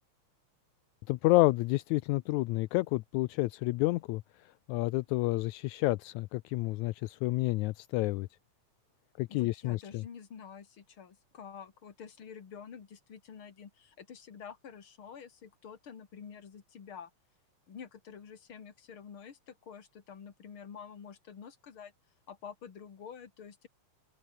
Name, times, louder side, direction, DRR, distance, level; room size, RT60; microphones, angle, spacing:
voice 1, 1.1-8.3 9.2-10.0, left 20 dB, 80° left, 2.0 m, -29 dB
voice 2, 9.3-17.1 17.7-21.9 22.3-23.7, left 7 dB, 45° left, 3.0 m, -48 dB
omnidirectional pair, 3.4 m